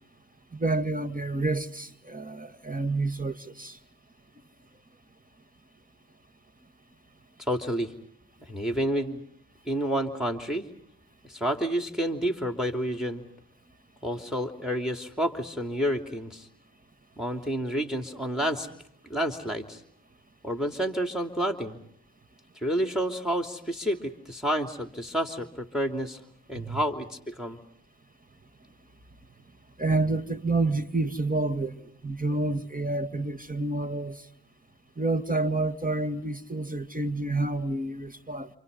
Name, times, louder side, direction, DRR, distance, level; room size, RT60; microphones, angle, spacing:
voice 1, 0.5-3.8 26.6-26.8 29.8-34.2 35.0-38.5, right 2 dB, 25° right, 2.0 m, -29 dB
voice 2, 7.5-7.9 8.5-9.2 9.7-10.7 11.2-13.2 14.0-16.5 17.2-18.7 19.1-19.8 20.4-21.8 22.5-26.2 26.5-27.6, equal, ahead, 3.2 m, -29 dB
29.0 x 28.5 x 5.5 m
supercardioid pair, 40°, 35 cm